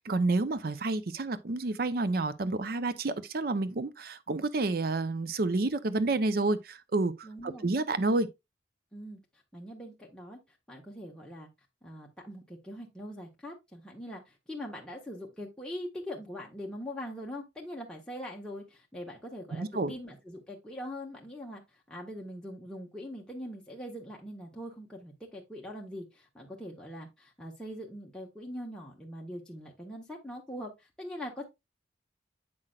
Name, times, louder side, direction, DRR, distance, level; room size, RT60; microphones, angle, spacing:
voice 1, 0.0-8.3 19.5-19.9, right 2 dB, 55° right, 0.5 m, -29 dB
voice 2, 7.2-7.7 8.9-9.2 9.5-10.4 10.7-11.5 11.8-21.6 21.9-31.4, equal, 5° left, 0.9 m, -42 dB
7.7 x 5.8 x 2.3 m
head